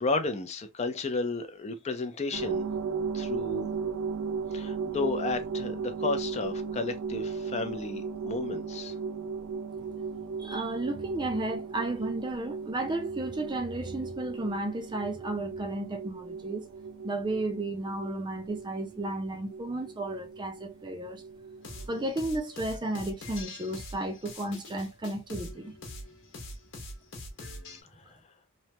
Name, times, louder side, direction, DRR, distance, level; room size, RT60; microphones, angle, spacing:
voice 1, 0.0-2.6 3.1-3.7 4.5-8.9 28.0-28.2, left 3 dB, 35° left, 0.4 m, -33 dB
Scary Horn, 2.3-22.1, right 5 dB, 80° right, 0.5 m, -36 dB
voice 2, 10.4-16.6 17.0-21.2 21.9-25.8, right 2 dB, 20° right, 0.5 m, -33 dB
sound 1, 21.6-27.8, left 1 dB, 65° left, 1.0 m, -43 dB
3.1 x 2.1 x 2.7 m
head